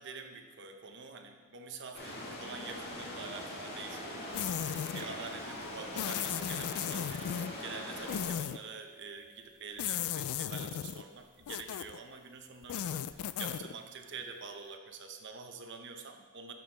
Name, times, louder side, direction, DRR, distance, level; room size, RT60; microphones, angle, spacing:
voice 1, 0.0-16.5, right 4 dB, 55° right, 5 dB, 0.8 m, -46 dB
sound 1, 1.9-8.3, left 1 dB, 50° left, 1.7 m, -42 dB
sound 2, 3.2-9.9, right 1 dB, 25° right, 0.9 m, -54 dB
sound 3, 4.3-5.1 6.0-7.5 8.1-8.6 9.8-11.0 11.5-12.0 12.6-13.7, left 10 dB, 85° left, 0.3 m, -35 dB
11.0 x 7.0 x 3.3 m, 1.5 s
head